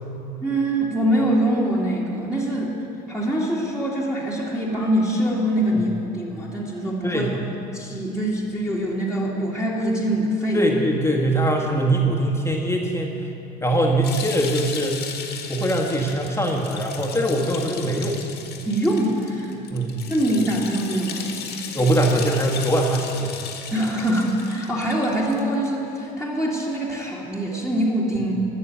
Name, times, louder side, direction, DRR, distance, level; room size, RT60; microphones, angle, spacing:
voice 1, 0.4-2.7 3.1-7.4 7.7-10.6 18.6-19.5 20.1-21.4 23.7-28.3, right 1 dB, 5° right, -7 dB, 2.2 m, -24 dB
voice 2, 10.5-13.1 13.6-15.1 15.5-18.2 19.7-20.0 21.7-23.4, right 1 dB, 10° left, -1 dB, 1.6 m, -22 dB
sound 1, 14.0-25.7, left 7 dB, 50° left, 1.7 m, -36 dB
14.0 x 6.7 x 7.2 m, 2.9 s
hypercardioid pair, 70°, 21 cm